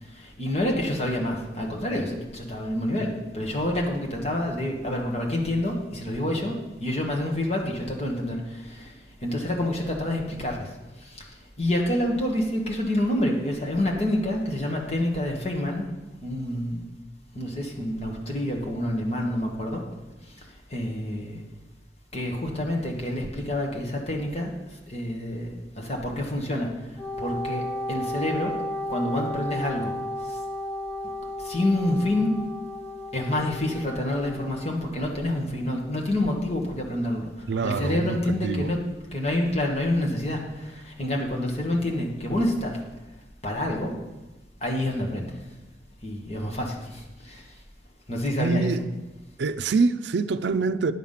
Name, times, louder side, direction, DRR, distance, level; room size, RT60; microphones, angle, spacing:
voice 1, 0.0-10.7 11.0-15.9 16.2-16.9 17.3-19.8 20.7-21.4 22.1-24.5 24.9-26.7 27.2-27.6 27.9-28.5 28.9-29.9 30.2-30.4 31.4-32.3 33.1-37.3 37.6-38.8 39.1-42.8 43.4-43.9 44.6-45.4 46.0-47.5 48.1-48.7, left 1 dB, 35° left, 1.8 m, -28 dB
Wind instrument woodwind instrument, 27.0-34.7, left 1 dB, 5° left, 0.5 m, -33 dB
voice 2, 37.5-38.7 48.4-48.9 49.4-50.9, right 4 dB, 75° right, 0.4 m, -25 dB
10.0 x 7.3 x 5.7 m
head